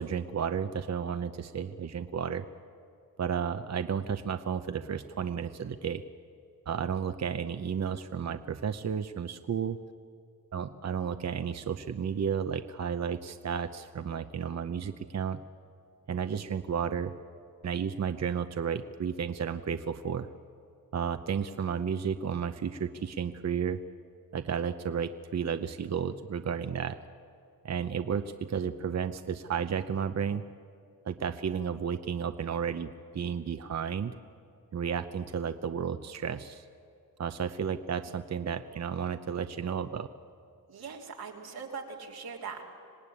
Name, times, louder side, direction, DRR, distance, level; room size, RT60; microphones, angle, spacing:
voice 1, 0.0-2.4 3.2-6.0 6.7-9.8 10.5-15.4 16.1-17.1 17.6-20.3 20.9-23.8 24.3-27.0 27.6-30.4 31.0-34.1 34.7-36.6 37.2-40.1, right 7 dB, 45° right, 10 dB, 0.8 m, -32 dB
voice 2, 40.7-42.6, right 5 dB, 90° right, 0 dB, 3.2 m, -41 dB
25.5 x 18.0 x 9.9 m, 2.5 s
cardioid pair, 75°, 36 cm